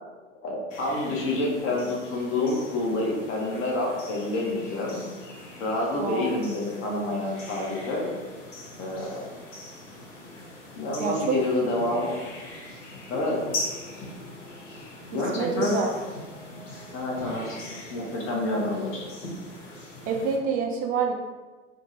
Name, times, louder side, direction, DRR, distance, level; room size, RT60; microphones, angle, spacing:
voice 1, 0.4-5.1 5.6-8.1 8.8-9.3 10.8-12.1 13.1-13.4 15.1-15.8 16.9-17.6 17.9-19.1, left 2 dB, 35° left, -2 dB, 0.8 m, -28 dB
sound 1, 0.7-20.4, left 1 dB, 80° left, 1.1 m, -41 dB
voice 2, 6.0-6.3 11.0-11.4 11.9-12.0 15.1-15.9 20.1-21.1, right 5 dB, 25° right, 3 dB, 0.3 m, -27 dB
3.5 x 2.1 x 2.6 m, 1.3 s
hypercardioid pair, 100°, 37 cm